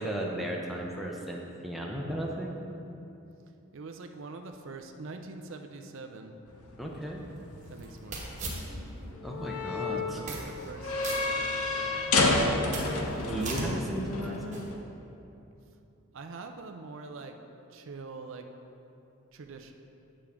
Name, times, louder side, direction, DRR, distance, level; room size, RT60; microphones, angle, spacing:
voice 1, 0.0-2.6 6.8-7.2 9.2-10.2 13.2-14.6, right 1 dB, ahead, -2 dB, 0.6 m, -35 dB
voice 2, 3.7-6.3 7.7-8.7 10.0-10.4 10.7-12.1 12.4-13.0 16.1-17.4 17.7-18.5 19.3-19.7, right 3 dB, 65° right, 5 dB, 0.5 m, -44 dB
sound 1, 6.5-14.8, left 2 dB, 90° left, 0.7 m, -31 dB
sound 2, 6.8-9.1 9.5-9.6 10.1-10.7 11.0-11.9 12.3-14.7, right 2 dB, 35° right, 1.2 m, -39 dB
8.8 x 6.9 x 3.5 m, 2.8 s
head